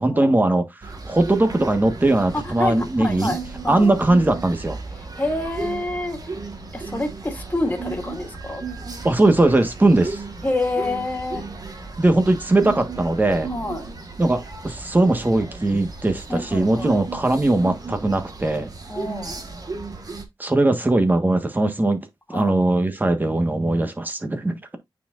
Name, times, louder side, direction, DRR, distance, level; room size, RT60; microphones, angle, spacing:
voice 1, 0.0-3.4 3.7-4.8 9.0-10.2 12.0-13.5 14.2-18.7 20.4-22.0 22.3-24.8, right 2 dB, 20° right, 1.4 m, -20 dB
sound 1, 0.8-20.2, right 4 dB, 45° right, 1.5 m, -35 dB
voice 2, 2.3-4.1 5.0-6.2 6.7-8.6 10.4-11.4 13.5-13.9 16.3-17.0 18.9-19.4 22.3-22.6, left 2 dB, 20° left, 2.3 m, -27 dB
9.1 x 4.4 x 2.5 m
wide cardioid pair, 125°, 9 cm